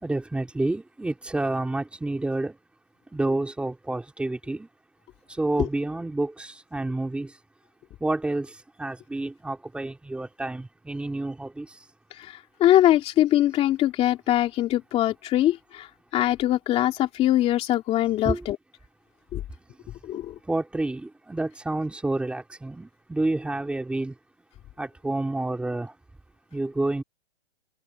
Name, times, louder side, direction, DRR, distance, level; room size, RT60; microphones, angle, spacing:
voice 1, 0.0-2.5 3.1-4.7 5.4-7.3 8.0-8.5 8.8-11.7 18.2-18.5 20.5-24.1 24.8-25.9 26.5-27.0, right 2 dB, 5° right, 3.3 m, -29 dB
voice 2, 12.1-18.6 19.3-19.4 20.0-20.3, left 13 dB, 20° left, 2.6 m, -22 dB
hypercardioid pair, 165°, 33 cm